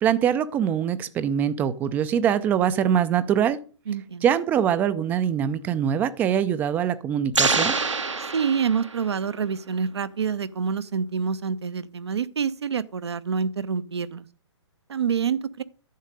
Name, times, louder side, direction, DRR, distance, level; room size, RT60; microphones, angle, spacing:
voice 1, 0.0-3.6 4.2-7.7, right 9 dB, 10° right, 0.4 m, -23 dB
voice 2, 3.9-4.3 8.2-14.3 14.9-15.6, right 6 dB, 60° right, 0.6 m, -27 dB
sound 1, 7.3-9.2, right 4 dB, 80° right, 1.0 m, -25 dB
10.5 x 7.2 x 5.2 m
figure-of-eight pair, 125°, 15 cm